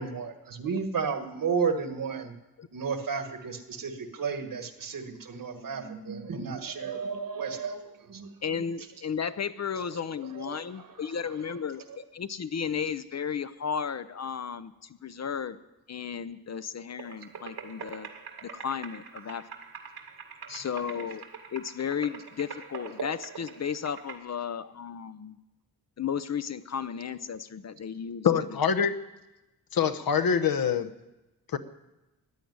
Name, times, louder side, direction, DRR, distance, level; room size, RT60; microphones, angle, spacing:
voice 1, 0.0-2.4 2.7-8.3 9.9-10.0 10.3-11.2 20.4-20.7, right 5 dB, 60° right, 7 dB, 1.4 m, -33 dB
voice 2, 8.4-15.6 15.9-18.1 18.4-19.5 20.5-21.2 21.5-25.4 26.0-28.3, left 7 dB, 45° left, 13 dB, 0.6 m, -34 dB
sound 1, 17.0-24.2, right 5 dB, 85° right, 2.1 m, -43 dB
voice 3, 28.2-29.0 29.7-30.9 31.5-31.6, left 7 dB, 65° left, 11 dB, 1.0 m, -24 dB
15.0 x 10.5 x 9.4 m, 1.0 s
wide cardioid pair, 180°, 37 cm